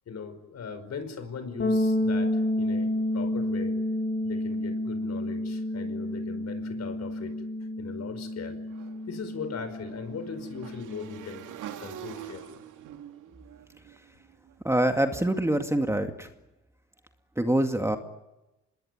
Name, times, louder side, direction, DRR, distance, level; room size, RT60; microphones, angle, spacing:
voice 1, 0.1-3.7 4.2-7.4 7.8-8.6 9.1-11.5 11.8-12.5, left 5 dB, 60° left, 10 dB, 5.2 m, -39 dB
sound 1, 1.6-11.3, left 1 dB, 40° left, 3.0 m, -30 dB
Motorcycle / Engine, 8.7-14.8, right 10 dB, 80° right, 2.4 m, -45 dB
voice 2, 14.6-16.3 17.4-18.0, right 1 dB, 10° right, 6 dB, 2.2 m, -25 dB
26.0 x 21.0 x 9.7 m, 0.97 s
cardioid pair, 90°, 30 cm